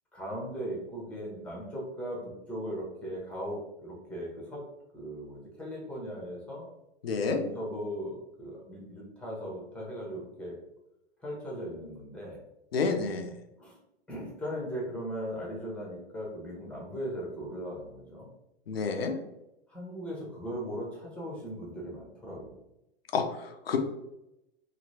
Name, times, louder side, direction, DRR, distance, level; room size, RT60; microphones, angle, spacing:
voice 1, 0.1-4.6 4.9-6.7 7.3-10.6 11.2-12.4 13.6-13.8 14.1-18.3 19.7-22.6, equal, 5° left, -3 dB, 1.0 m, -38 dB
voice 2, 7.0-7.4 12.7-13.3 18.7-19.1 23.1-23.8, left 5 dB, 70° left, 6 dB, 0.6 m, -29 dB
2.9 x 2.8 x 2.7 m, 0.89 s
figure-of-eight pair, 95°, 31 cm